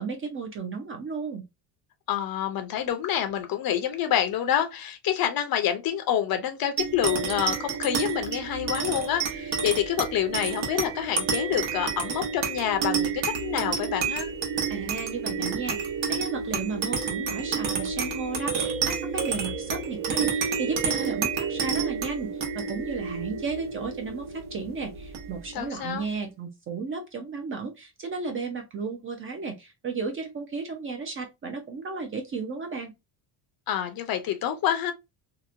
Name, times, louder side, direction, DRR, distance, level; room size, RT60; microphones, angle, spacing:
voice 1, 0.0-1.4 14.7-32.9, right 4 dB, 30° right, 0.4 m, -34 dB
voice 2, 2.1-14.3 25.5-26.1 33.7-34.9, left 10 dB, 50° left, 0.5 m, -27 dB
sound 1, 6.8-25.6, right 6 dB, 70° right, 0.9 m, -30 dB
2.8 x 2.1 x 2.4 m
cardioid pair, 155°, 46 cm